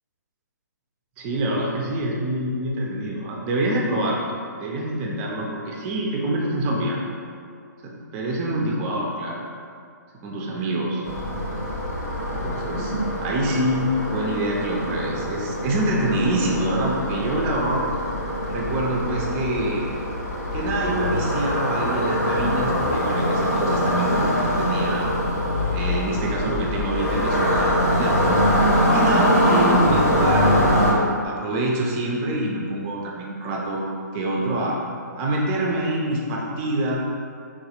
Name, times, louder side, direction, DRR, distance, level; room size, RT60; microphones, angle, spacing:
voice 1, 1.2-4.3 4.6-7.0 7.8-9.4 10.2-11.0 12.3-12.9 13.2-17.8 18.5-19.9 20.5-25.2 25.7-28.4 28.9-33.8 34.1-34.8 35.2-36.9, right 1 dB, 20° right, -3 dB, 0.4 m, -26 dB
sound 1, 11.0-30.9, equal, 50° left, 0.8 m, -23 dB
3.1 x 2.1 x 2.8 m, 2.3 s
figure-of-eight pair, 130°, 10 cm